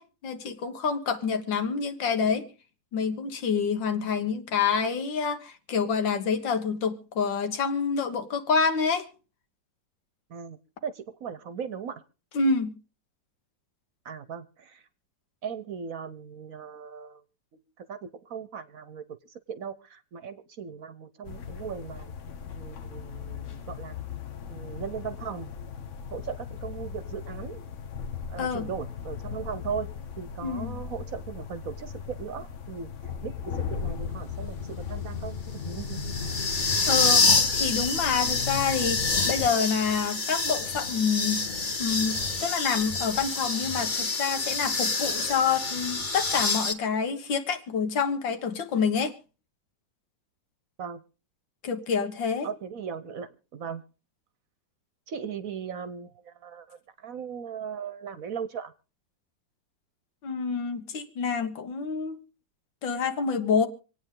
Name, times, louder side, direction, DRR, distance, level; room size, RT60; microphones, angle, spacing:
voice 1, 0.0-2.5 2.9-9.1 12.3-12.7 28.4-28.7 30.4-30.8 36.9-37.3 37.5-41.5 41.8-49.1 51.6-52.5 60.2-62.2 62.8-63.7, left 5 dB, 85° left, 2.0 m, -27 dB
voice 2, 10.8-12.0 14.0-14.8 15.4-17.2 17.8-18.0 18.3-19.0 19.5-22.1 22.5-24.0 24.5-25.5 26.1-27.6 28.3-29.9 30.2-32.9 33.2-36.4 50.8-51.0 52.4-53.8 55.1-58.7, right 7 dB, 55° right, 1.1 m, -38 dB
sound 1, 21.2-39.2, left 7 dB, 50° left, 1.0 m, -38 dB
sound 2, 33.6-46.7, left 3 dB, 30° left, 1.4 m, -27 dB
26.0 x 9.1 x 3.7 m
omnidirectional pair, 2.0 m